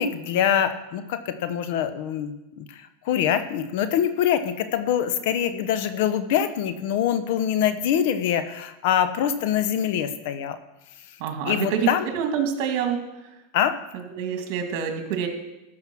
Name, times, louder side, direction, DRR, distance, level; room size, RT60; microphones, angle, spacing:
voice 1, 0.0-10.6 11.5-12.1 13.5-13.8, left 9 dB, 65° left, 12 dB, 0.9 m, -24 dB
voice 2, 11.2-13.0 13.9-15.3, right 7 dB, 55° right, 5 dB, 2.1 m, -27 dB
13.5 x 5.7 x 6.1 m, 0.98 s
supercardioid pair, 125°, 0 cm